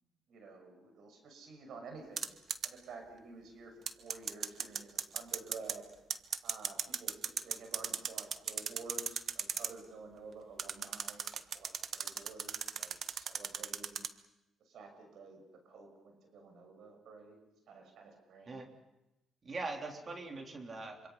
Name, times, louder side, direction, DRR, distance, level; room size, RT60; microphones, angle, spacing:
voice 1, 0.3-2.3 2.6-5.9 6.4-14.0 14.7-15.4 15.6-17.4 17.7-18.6, right 4 dB, 70° right, 4 dB, 6.2 m, -51 dB
sound 1, 2.2-2.7 3.9-5.8 6.1-9.7 10.6-14.1, right 7 dB, 55° right, 1.3 m, -36 dB
voice 2, 19.4-21.1, right 3 dB, 35° right, 2 dB, 3.5 m, -42 dB
26.0 x 25.5 x 5.7 m, 0.92 s
cardioid pair, 90°, 0 cm